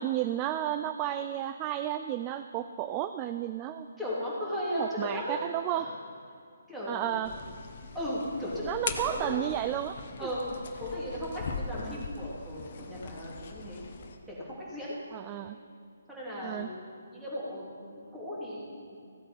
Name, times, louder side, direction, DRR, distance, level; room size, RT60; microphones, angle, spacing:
voice 1, 0.0-3.9 4.7-5.9 6.9-7.3 8.6-9.9 10.2-10.3 11.8-12.0 15.1-15.6 16.4-16.7, right 12 dB, 25° right, 9 dB, 0.3 m, -32 dB
voice 2, 4.0-5.4 5.7-5.9 6.7-7.4 7.9-9.4 10.2-13.8 14.3-15.0 16.1-19.0, left 1 dB, 5° right, -8 dB, 3.3 m, -36 dB
sound 1, 7.2-14.2, left 4 dB, 45° left, 1.1 m, -40 dB
15.5 x 8.1 x 5.5 m, 2.5 s
figure-of-eight pair, 140°, 0 cm